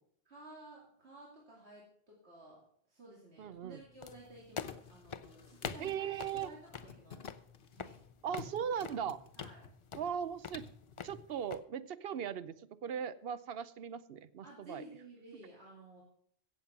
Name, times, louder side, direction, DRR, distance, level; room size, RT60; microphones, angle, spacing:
voice 1, 0.2-2.6 2.9-6.1 6.3-7.2 7.7-7.9 9.4-9.6 14.4-16.0, right 2 dB, 90° right, -4 dB, 2.8 m, -54 dB
sound 1, 3.4-11.2, left 5 dB, 65° left, 1.2 m, -52 dB
voice 2, 3.4-3.8 5.8-6.5 8.2-9.2 10.0-10.7 11.0-14.8, right 8 dB, 70° right, 15 dB, 0.9 m, -38 dB
sound 2, 4.0-11.6, left 6 dB, 40° left, 0.5 m, -47 dB
16.0 x 7.4 x 5.9 m, 0.67 s
omnidirectional pair, 1.1 m